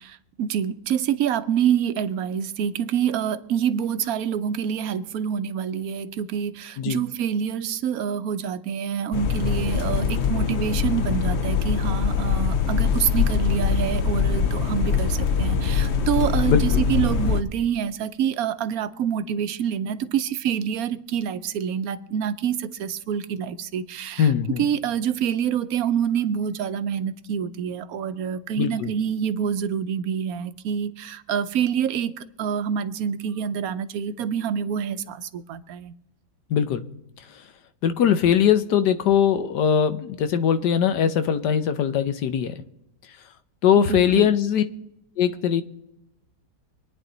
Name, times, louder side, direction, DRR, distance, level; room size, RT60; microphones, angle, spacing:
voice 1, 0.0-35.9 43.8-44.3, right 8 dB, 65° right, 1.1 m, -26 dB
sound 1, 9.1-17.4, left 6 dB, 50° left, 0.9 m, -23 dB
voice 2, 16.5-16.8 24.2-24.6 28.6-28.9 36.5-36.8 37.8-42.6 43.6-44.6 45.2-45.6, left 8 dB, 85° left, 1.5 m, -21 dB
25.0 x 9.6 x 4.0 m
omnidirectional pair, 1.8 m